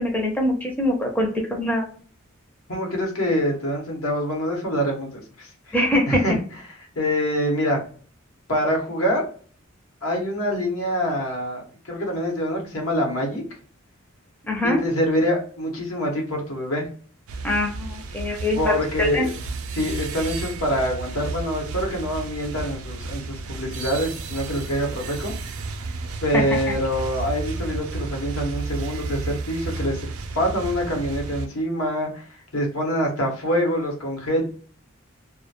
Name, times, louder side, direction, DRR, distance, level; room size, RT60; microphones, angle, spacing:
voice 1, 0.0-1.9 5.7-6.4 14.4-14.8 17.4-18.7 19.0-19.3 26.3-26.4, left 1 dB, 10° left, 0 dB, 0.4 m, -23 dB
voice 2, 2.7-5.7 6.1-6.3 7.0-7.8 8.5-9.2 10.0-13.4 14.6-16.9 18.6-19.3 19.7-25.3 26.2-30.1 30.3-32.3 32.5-34.4, equal, 80° left, 0 dB, 0.9 m, -25 dB
sound 1, 17.3-31.5, right 3 dB, 85° right, 0.4 m, -32 dB
2.2 x 2.1 x 2.8 m, 0.43 s
head